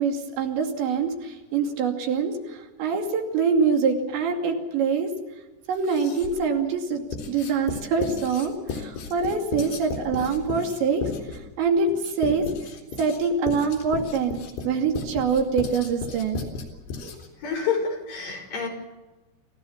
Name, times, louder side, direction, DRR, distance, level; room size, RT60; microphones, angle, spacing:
voice 1, 0.0-5.1 5.7-7.0 7.3-11.0 11.6-11.9 12.2-12.4 13.0-16.4 17.0-17.1, right 5 dB, 90° right, 3 dB, 4.8 m, -25 dB
Writing, 5.7-6.5 7.1-17.4, left 5 dB, 75° left, 5.7 m, -35 dB
voice 2, 17.4-18.7, left 5 dB, 50° left, 1 dB, 6.4 m, -28 dB
28.0 x 16.0 x 7.2 m, 1.1 s
omnidirectional pair, 5.0 m